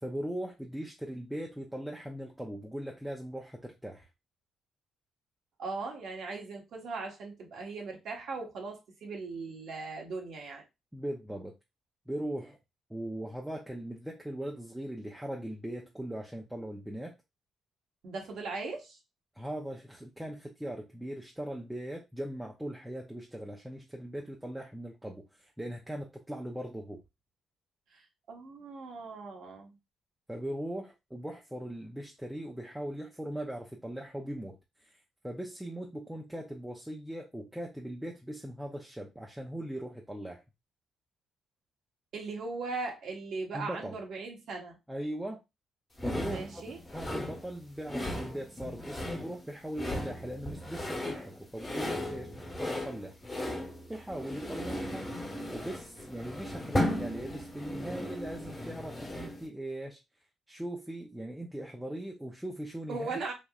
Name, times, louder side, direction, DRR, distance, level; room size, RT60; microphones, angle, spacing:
voice 1, 0.0-4.1 10.9-11.5 12.1-12.6 12.9-17.1 19.3-27.0 30.3-35.0 35.2-40.4 43.5-44.0 44.9-45.4 46.0-46.7 46.9-53.2 53.9-55.1 55.5-60.0 60.5-63.2, right 1 dB, 5° right, 0.6 m, -39 dB
voice 2, 5.6-10.6 18.0-19.0 27.9-28.0 28.3-29.8 42.1-44.8 46.2-46.8 62.9-63.3, right 3 dB, 70° right, 1.1 m, -39 dB
sound 1, 46.0-59.5, left 1 dB, 25° left, 1.2 m, -36 dB
3.3 x 2.6 x 2.4 m
cardioid pair, 75°, 0 cm